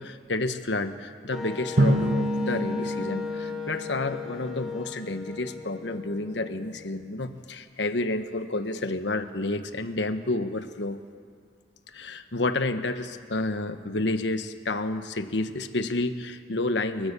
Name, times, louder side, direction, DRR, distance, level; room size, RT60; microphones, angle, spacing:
voice 1, 0.0-11.0 11.9-17.1, left 2 dB, 80° left, 9 dB, 1.2 m, -30 dB
Wind instrument woodwind instrument, 1.3-7.1, left 5 dB, ahead, 3.1 m, -37 dB
Drum, 1.8-4.4, right 1 dB, 60° right, 1.4 m, -26 dB
29.5 x 15.5 x 6.9 m, 2.1 s
head